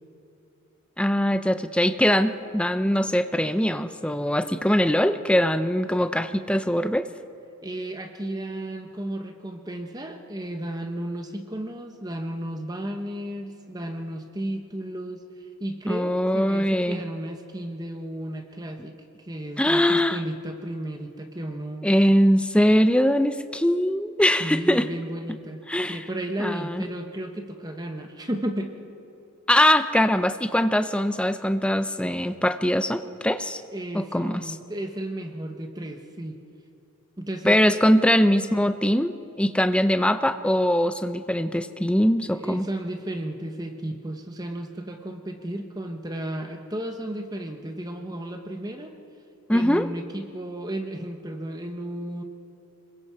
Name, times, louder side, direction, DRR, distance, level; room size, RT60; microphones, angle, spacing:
voice 1, 1.0-7.1 15.9-17.0 19.6-20.2 21.8-24.9 25.7-26.0 26.4-26.8 29.5-33.6 33.9-34.5 37.5-42.7 49.5-49.9, equal, 5° left, 10 dB, 0.6 m, -22 dB
voice 2, 7.6-21.9 24.4-25.6 25.9-28.7 33.7-36.4 37.2-37.6 42.4-48.9 49.5-52.2, right 1 dB, 20° right, 5 dB, 1.0 m, -33 dB
25.5 x 21.5 x 4.8 m, 2.8 s
head